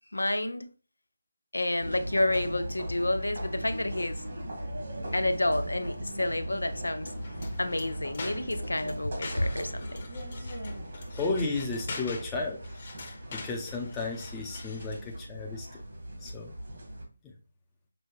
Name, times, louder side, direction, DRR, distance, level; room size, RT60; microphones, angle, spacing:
voice 1, 0.1-0.7 1.5-4.2 5.1-7.1 7.6-10.0, left 1 dB, 85° left, 0.5 m, -29 dB
sound 1, 1.8-17.0, right 1 dB, 60° right, 1.8 m, -38 dB
sound 2, 7.0-15.1, left 3 dB, 45° left, 1.0 m, -44 dB
voice 2, 11.1-12.6 13.3-15.8 16.2-16.5, left 3 dB, 10° left, 0.6 m, -33 dB
6.0 x 2.2 x 3.1 m
figure-of-eight pair, 155°, 0 cm